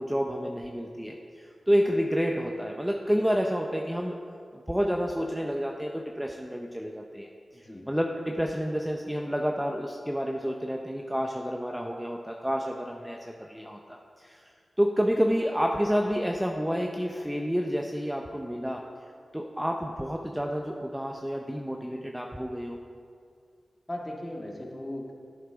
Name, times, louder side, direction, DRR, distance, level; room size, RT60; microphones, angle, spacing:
voice 1, 0.0-4.2 4.5-18.8 19.3-22.8, equal, 5° right, 2 dB, 0.6 m, -29 dB
voice 2, 7.5-7.8 23.9-25.1, left 1 dB, 20° left, -1 dB, 1.7 m, -37 dB
13.0 x 7.9 x 3.6 m, 2.2 s
cardioid pair, 65°, 0 cm